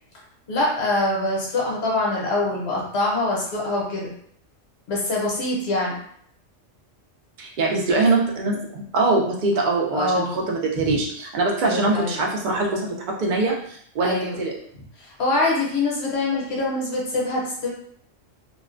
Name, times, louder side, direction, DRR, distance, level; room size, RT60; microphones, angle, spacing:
voice 1, 0.5-4.1 4.9-6.0 9.9-10.4 10.8-11.0 11.6-12.2 14.0-14.4 15.0-17.7, left 2 dB, 60° left, -4 dB, 0.9 m, -24 dB
voice 2, 7.4-14.5, right 3 dB, 60° right, -1 dB, 0.5 m, -23 dB
2.4 x 2.1 x 2.4 m, 0.64 s
omnidirectional pair, 1.3 m